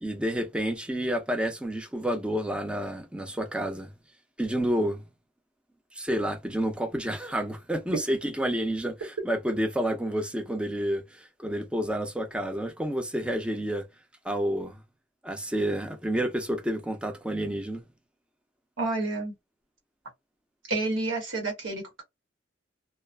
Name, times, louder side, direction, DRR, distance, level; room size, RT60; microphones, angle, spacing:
voice 1, 0.0-3.9 4.4-5.0 5.9-13.8 14.2-14.8 15.2-17.8, equal, 5° right, 0.4 m, -29 dB
voice 2, 18.8-19.3 20.7-22.0, right 2 dB, 80° right, 1.2 m, -29 dB
2.5 x 2.4 x 2.2 m
head